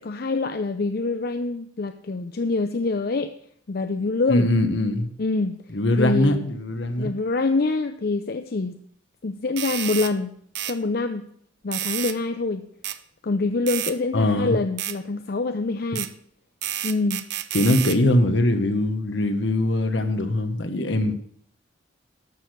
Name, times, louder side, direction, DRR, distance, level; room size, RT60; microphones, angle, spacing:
voice 1, 0.0-3.3 3.7-4.5 5.2-5.6 6.0-6.5 7.0-8.8 9.2-10.3 10.7-11.2 11.6-12.6 13.2-16.1 16.8-17.2, left 3 dB, 50° left, 0.5 m, -25 dB
voice 2, 4.3-5.1 5.7-7.1 14.1-14.6 17.5-21.2, left 1 dB, 70° left, 1.3 m, -22 dB
sound 1, 9.6-10.1 10.6-10.8 11.7-12.2 12.8-13.0 13.7-14.0 14.8-15.0 16.0-16.1 16.6-18.0, right 12 dB, 60° right, 0.6 m, -29 dB
12.5 x 6.5 x 6.7 m
head